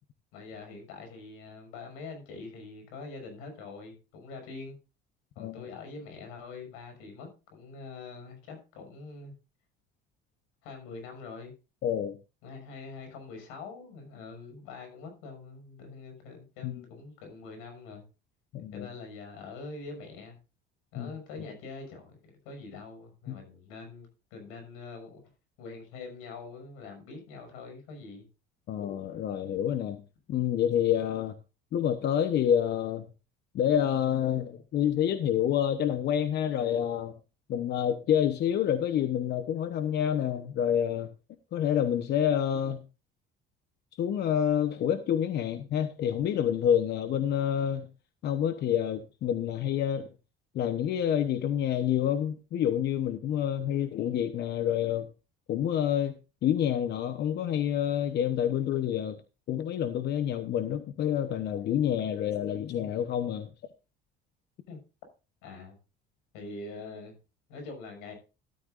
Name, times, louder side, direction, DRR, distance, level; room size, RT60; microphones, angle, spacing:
voice 1, 0.3-4.8 5.3-9.3 10.6-11.5 12.4-18.0 18.7-20.4 20.9-25.2 25.6-28.3 64.7-64.8 65.4-65.8 66.3-67.1 67.5-68.1, left 4 dB, 90° left, 6.4 m, -44 dB
voice 2, 11.8-12.2 16.6-16.7 18.5-18.9 20.9-21.1 23.3-23.4 28.7-30.0 30.3-31.3 31.7-33.1 33.5-37.1 37.5-41.1 41.5-42.8 43.9-47.9 48.2-50.1 50.5-55.1 55.5-59.2 59.5-63.5, left 9 dB, 50° left, 1.0 m, -28 dB
13.5 x 12.5 x 2.5 m
cardioid pair, 125°, 21 cm